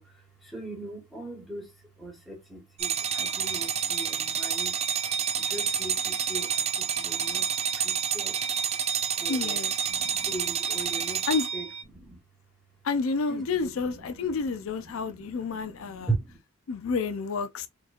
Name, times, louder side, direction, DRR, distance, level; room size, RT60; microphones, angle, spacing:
voice 1, 0.0-7.4 7.8-8.4 9.2-9.6 9.9-11.2 11.5-12.2 13.3-16.4, right 3 dB, ahead, 1.2 m, -39 dB
sound 1, 2.8-11.8, right 7 dB, 30° right, 0.3 m, -29 dB
voice 2, 9.3-9.7 11.3-11.5 12.8-16.1 16.7-17.7, left 4 dB, 70° left, 0.4 m, -29 dB
4.4 x 2.9 x 2.4 m
head